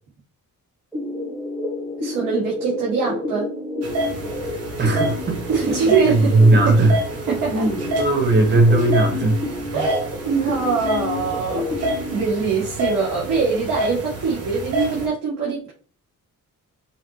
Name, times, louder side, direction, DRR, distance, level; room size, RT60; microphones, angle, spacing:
sound 1, 0.9-12.2, left 2 dB, 5° right, 1.6 m, -29 dB
voice 1, 2.0-3.5 5.5-6.8 7.3-7.7 9.7-15.7, right 5 dB, 80° right, -6 dB, 1.9 m, -23 dB
sound 2, 3.8-15.1, right 1 dB, 50° right, 1.3 m, -29 dB
voice 2, 4.8-7.0 7.5-9.4, right 2 dB, 35° right, 3 dB, 1.1 m, -18 dB
5.6 x 3.0 x 2.9 m, 0.41 s
wide cardioid pair, 175°, 32 cm